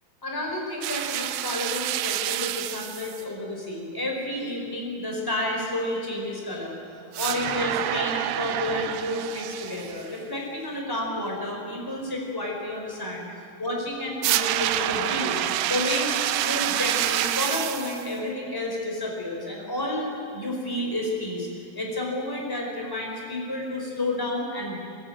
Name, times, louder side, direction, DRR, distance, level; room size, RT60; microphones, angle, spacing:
voice 1, 0.2-6.8 7.2-13.3 13.6-15.4 15.7-24.8, left 1 dB, 5° left, -1 dB, 3.4 m, -30 dB
sound 1, 0.8-3.2 7.1-10.1 14.2-18.1, right 13 dB, 80° right, 2.5 m, -27 dB
22.5 x 19.0 x 8.7 m, 2.4 s
omnidirectional pair, 5.8 m